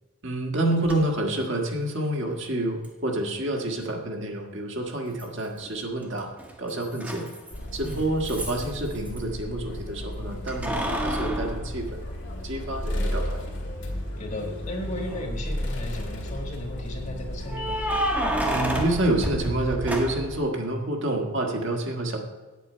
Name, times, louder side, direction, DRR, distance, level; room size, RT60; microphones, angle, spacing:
voice 1, 0.2-6.3 6.6-7.3 7.7-12.0 12.4-13.5 18.4-22.2, right 1 dB, 55° right, 1 dB, 1.5 m, -28 dB
Keys jangling, 0.9-1.0 2.8-2.9 5.2-5.7 6.0-9.2 10.5-12.6 13.1-13.2 15.0-15.5 17.5-20.4, right 1 dB, 5° right, 1.0 m, -30 dB
sound 1, 7.5-19.3, left 1 dB, 55° left, 2.0 m, -34 dB
voice 2, 14.2-17.8, left 1 dB, 30° left, 3 dB, 1.5 m, -35 dB
8.9 x 8.4 x 5.5 m, 1.3 s
head